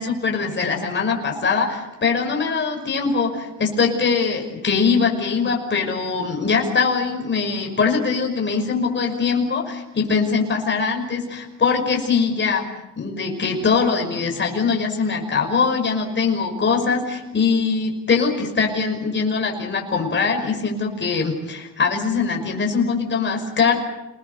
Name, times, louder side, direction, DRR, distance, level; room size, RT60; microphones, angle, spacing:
voice 1, 0.0-12.6 13.0-23.8, left 5 dB, 40° left, 2 dB, 5.5 m, -22 dB
27.5 x 21.0 x 6.8 m, 0.98 s
cardioid pair, 90°, 30 cm